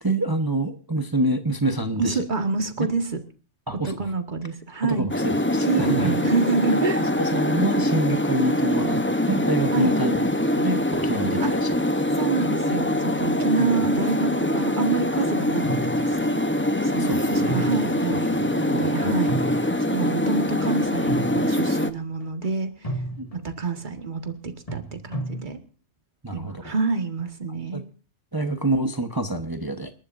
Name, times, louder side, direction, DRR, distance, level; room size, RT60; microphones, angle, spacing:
voice 1, 0.0-2.2 3.7-4.1 4.8-6.1 6.7-10.2 10.6-11.8 13.5-13.9 17.0-17.6 18.1-19.1 23.2-23.3 26.2-26.7 27.7-27.8 28.3-29.9, right 2 dB, 20° right, 8 dB, 1.1 m, -27 dB
voice 2, 2.0-3.2 3.8-5.1 5.7-7.1 9.7-9.9 11.4-11.5 12.1-16.3 16.8-22.9 23.3-25.6 26.3-27.8, right 4 dB, 40° right, 7 dB, 2.0 m, -28 dB
sound 1, 5.1-21.9, left 1 dB, 10° left, 0.8 m, -24 dB
sound 2, 15.6-16.5 17.5-18.2 18.6-18.7 19.3-20.0 21.1-21.9 22.2-22.5 22.8-23.5 24.7-25.4, right 1 dB, 30° left, 2.1 m, -32 dB
29.0 x 12.0 x 2.6 m, 0.36 s
omnidirectional pair, 1.3 m